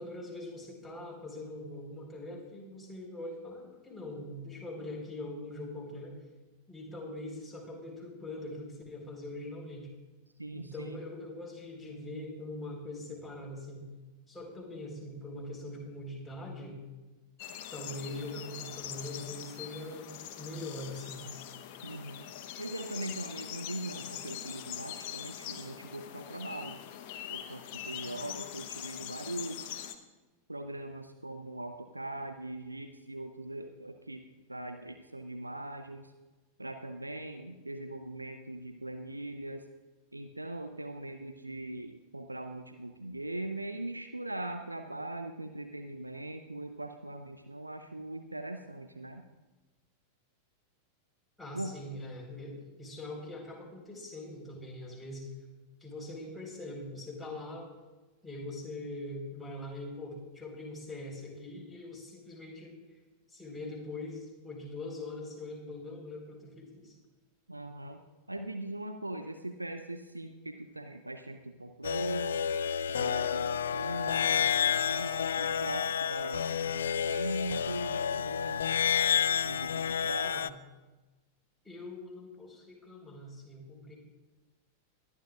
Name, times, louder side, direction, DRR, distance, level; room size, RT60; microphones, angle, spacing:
voice 1, 0.0-6.2 6.7-9.9 10.5-13.9 14.3-16.8 17.7-21.3 51.4-55.3 55.8-57.7 58.2-62.8 63.3-66.9 80.2-80.6 81.6-84.0, left 1 dB, 5° left, -4 dB, 4.3 m, -42 dB
voice 2, 10.4-11.0 21.8-22.2 22.6-26.8 27.3-29.8 30.5-34.2 34.5-36.1 36.6-39.7 40.1-49.2 51.5-51.7 67.5-68.0 68.3-72.4 73.0-78.6 79.4-80.5, right 1 dB, 85° right, 7 dB, 0.6 m, -40 dB
sound 1, 17.4-29.9, left 10 dB, 45° left, 0.9 m, -43 dB
sound 2, 71.8-80.5, left 8 dB, 65° left, 0.3 m, -30 dB
21.5 x 11.0 x 2.5 m, 1.2 s
figure-of-eight pair, 90°, 0 cm